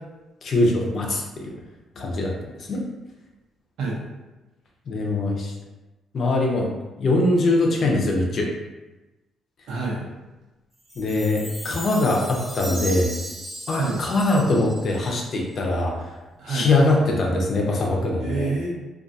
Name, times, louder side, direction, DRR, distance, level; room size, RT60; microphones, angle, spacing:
voice 1, 0.4-1.5 2.0-2.3 2.7-2.8 4.9-5.5 6.1-6.7 7.0-8.5 11.0-13.1 13.7-16.1 16.5-18.5, left 2 dB, 50° left, -1 dB, 0.5 m, -22 dB
voice 2, 9.7-10.1 13.7-14.0 16.4-16.7 18.2-18.7, right 3 dB, 85° right, -4 dB, 0.7 m, -27 dB
Chime, 10.9-15.4, right 1 dB, 5° right, 0.6 m, -37 dB
2.3 x 2.3 x 2.6 m, 1.1 s
cardioid pair, 110°, 0 cm